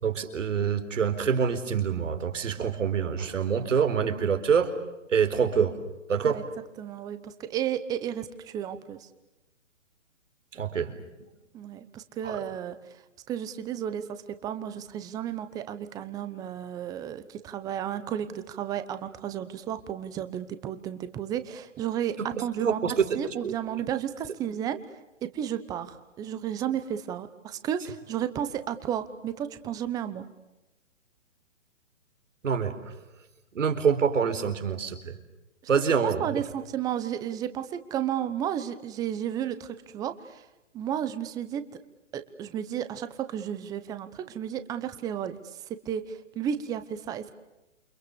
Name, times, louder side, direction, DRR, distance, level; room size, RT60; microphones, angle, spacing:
voice 1, 0.0-4.7 5.1-5.8 6.1-6.4 10.5-10.9 12.2-12.4 22.4-23.1 23.4-23.5 32.4-32.9 33.5-35.1 35.7-36.2, right 6 dB, 75° right, 7 dB, 4.3 m, -26 dB
voice 2, 6.8-9.1 11.5-13.0 13.3-24.8 25.2-30.2 36.2-40.4 40.7-41.6 42.1-47.3, right 10 dB, 10° right, 11 dB, 0.9 m, -33 dB
29.0 x 27.0 x 7.0 m, 1.0 s
hypercardioid pair, 155°, 38 cm